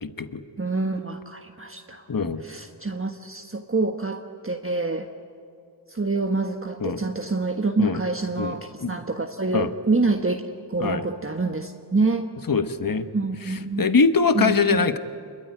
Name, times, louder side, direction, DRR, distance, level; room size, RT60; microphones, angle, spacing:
voice 1, 0.0-0.4 2.1-2.4 6.8-7.0 7.8-8.0 8.4-8.5 8.8-8.9 9.5-9.7 10.8-11.0 12.5-13.1 13.5-15.0, left 4 dB, 50° left, 9 dB, 1.3 m, -22 dB
voice 2, 0.6-2.0 2.4-5.1 5.9-10.4 10.7-12.3 13.1-13.9 14.3-14.8, right 3 dB, 30° right, 3 dB, 1.4 m, -26 dB
27.0 x 22.5 x 9.5 m, 2.4 s
wide cardioid pair, 55°, 44 cm